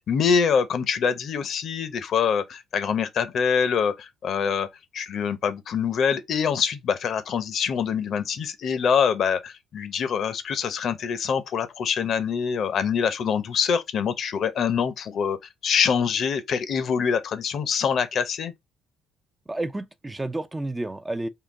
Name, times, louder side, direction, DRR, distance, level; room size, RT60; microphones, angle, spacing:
voice 1, 0.0-4.7 4.9-15.4 15.6-18.5, left 7 dB, 55° left, 0.6 m, -25 dB
voice 2, 19.5-21.3, right 2 dB, 15° right, 0.3 m, -30 dB
3.7 x 2.2 x 3.6 m
cardioid pair, 105°, 0 cm